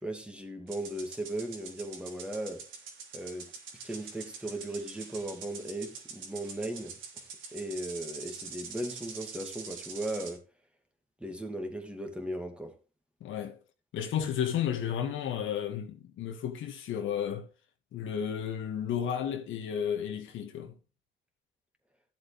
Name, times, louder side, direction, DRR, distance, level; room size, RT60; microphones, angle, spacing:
voice 1, 0.0-2.6 3.1-3.5 3.8-10.4 11.2-12.8, right 1 dB, 5° right, 2.5 m, -37 dB
sound 1, 0.7-10.4, right 5 dB, 80° right, 3.2 m, -45 dB
voice 2, 13.2-13.6 13.9-17.5 17.9-20.7, left 9 dB, 80° left, 2.0 m, -33 dB
12.0 x 7.7 x 3.4 m
cardioid pair, 90°, 20 cm